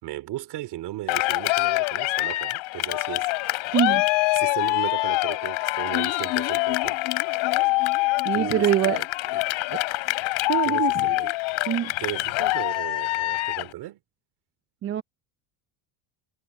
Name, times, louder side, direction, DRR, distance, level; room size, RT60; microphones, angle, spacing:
voice 1, 0.0-3.8 4.3-7.0 8.3-9.1 9.3-9.5 10.6-11.3 12.0-14.0, right 16 dB, 55° right, 2.9 m, -36 dB
Cheering, 1.1-13.7, left 21 dB, 75° left, 3.3 m, -25 dB
voice 2, 3.7-4.1 8.2-9.0 9.7-9.8 10.5-11.1 11.7-11.9 14.8-15.0, right 11 dB, 30° right, 0.6 m, -24 dB
sound 1, 5.9-9.8 10.1-10.2 10.4-10.5, left 16 dB, 50° left, 1.4 m, -36 dB
cardioid pair, 160°, 48 cm